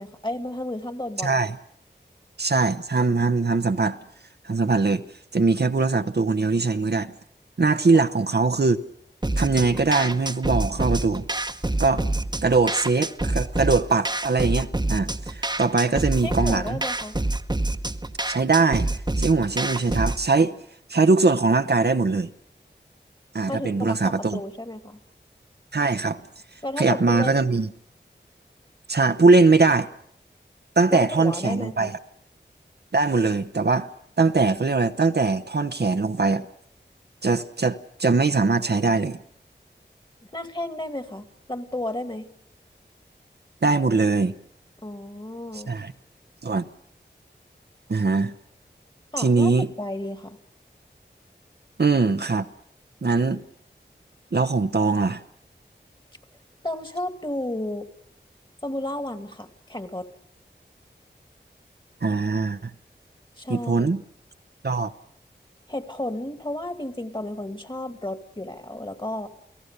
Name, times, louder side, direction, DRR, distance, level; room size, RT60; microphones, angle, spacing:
voice 1, 0.0-1.4 16.2-17.2 23.5-25.0 26.6-27.4 30.9-31.9 40.3-42.3 44.8-45.7 49.1-49.5 49.8-50.4 56.6-57.9 58.6-60.1 63.4-63.9 65.7-69.3, left 1 dB, 25° left, 9 dB, 2.0 m, -32 dB
voice 2, 1.2-1.6 2.4-4.0 4.4-5.0 5.3-7.1 7.6-8.8 9.4-11.2 11.8-12.0 12.4-16.8 18.3-18.9 19.2-20.6 20.9-22.3 23.3-24.4 25.7-26.2 26.8-27.7 28.9-29.9 30.8-32.0 32.9-33.9 34.2-36.5 37.2-39.2 43.6-44.3 45.7-45.9 46.4-46.6 47.9-48.3 49.2-49.7 51.8-52.5 53.0-53.4 54.3-55.2 62.0-62.7 63.5-64.0 64.6-64.9, right 3 dB, 65° right, 9 dB, 0.9 m, -21 dB
sound 1, 9.2-20.2, right 2 dB, 25° right, 1.1 m, -27 dB
29.5 x 17.5 x 6.7 m, 0.66 s
wide cardioid pair, 60°, 18 cm